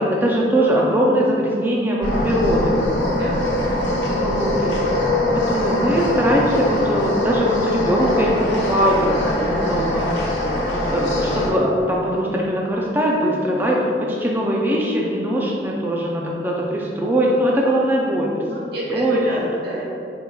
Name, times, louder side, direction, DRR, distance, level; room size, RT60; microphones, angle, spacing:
voice 1, 0.0-2.8 4.2-4.8 5.3-10.1 10.7-18.3 18.9-19.2, equal, 10° right, -2 dB, 0.3 m, -21 dB
sound 1, 2.0-11.5, left 1 dB, 90° left, 1.1 m, -22 dB
voice 2, 3.1-4.1 18.4-19.8, equal, 60° right, -6 dB, 1.2 m, -30 dB
5.2 x 4.3 x 2.3 m, 2.6 s
head